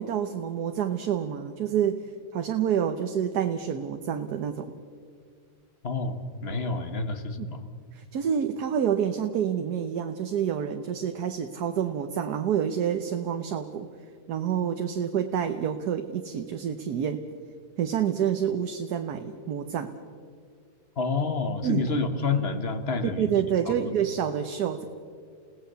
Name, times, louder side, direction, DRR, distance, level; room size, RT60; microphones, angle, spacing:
voice 1, 0.0-2.1 2.3-4.7 7.4-7.5 7.9-13.9 14.3-17.2 17.8-19.9 21.6-21.9 23.2-24.8, right 8 dB, 70° right, 7 dB, 1.5 m, -28 dB
voice 2, 5.8-7.6 21.0-23.3, left 4 dB, 40° left, 9 dB, 1.6 m, -28 dB
29.5 x 17.5 x 6.9 m, 2.1 s
omnidirectional pair, 1.8 m